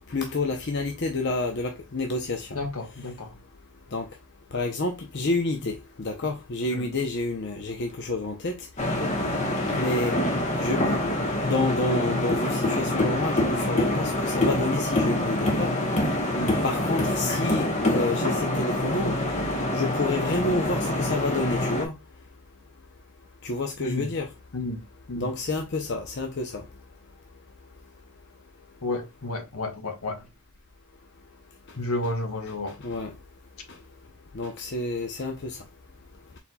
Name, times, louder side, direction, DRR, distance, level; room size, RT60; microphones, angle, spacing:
voice 1, 0.1-2.6 3.9-4.1 4.5-8.7 9.7-10.1 10.6-11.0 11.4-15.8 16.6-19.2 19.7-21.9 23.4-24.3 25.2-26.7 32.8-33.1 33.7-33.8 34.3-35.6, left 2 dB, 50° left, 0.6 m, -29 dB
voice 2, 2.5-3.4 6.7-6.9 8.8-9.1 16.3-16.6 23.8-24.1 24.5-24.8 25.1-25.3 28.8-30.3 31.8-32.8, left 2 dB, 75° left, 1.1 m, -32 dB
sound 1, 8.8-21.8, left 1 dB, 30° left, 0.9 m, -26 dB
4.2 x 4.1 x 2.2 m
head